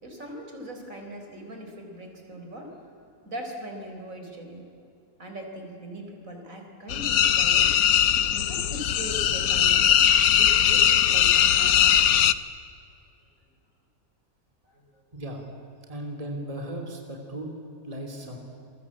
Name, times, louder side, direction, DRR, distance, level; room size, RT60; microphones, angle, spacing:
voice 1, 0.0-4.7 5.2-7.7 8.3-12.1 14.7-15.0, right 1 dB, 60° right, 3 dB, 4.6 m, -40 dB
sound 1, 6.9-12.3, left 10 dB, 75° left, 1.3 m, -20 dB
voice 2, 15.1-15.4 15.9-17.5 17.8-18.4, right 1 dB, 25° right, 2 dB, 3.3 m, -36 dB
28.5 x 22.5 x 8.6 m, 2.6 s
omnidirectional pair, 1.6 m